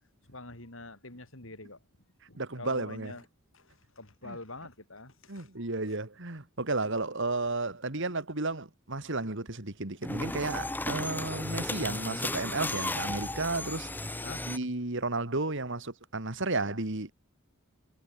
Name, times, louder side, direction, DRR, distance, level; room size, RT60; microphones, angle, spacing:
voice 1, 0.3-1.8 2.3-3.3 3.5-5.5 14.2-14.5, left 2 dB, 65° left, 5.7 m, -46 dB
voice 2, 2.4-3.1 4.2-4.4 5.3-13.9 14.5-17.1, right 3 dB, 60° right, 2.4 m, -33 dB
sound 1, 10.0-14.6, left 1 dB, 10° left, 2.8 m, -34 dB
head